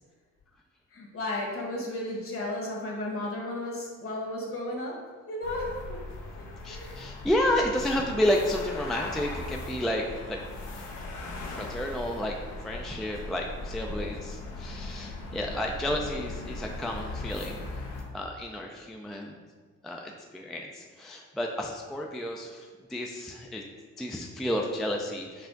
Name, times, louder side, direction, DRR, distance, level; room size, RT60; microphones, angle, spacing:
voice 1, 0.9-5.0 5.3-6.0 6.3-7.0, left 1 dB, 50° left, -2 dB, 1.4 m, -34 dB
sound 1, 5.4-18.0, left 2 dB, 75° left, 0.8 m, -39 dB
voice 2, 6.6-10.4 11.6-12.4 12.6-17.6 18.1-19.4 19.8-23.6 24.0-25.5, left 1 dB, ahead, 1 dB, 0.3 m, -31 dB
5.7 x 2.4 x 3.8 m, 1.5 s
cardioid pair, 90°, 30 cm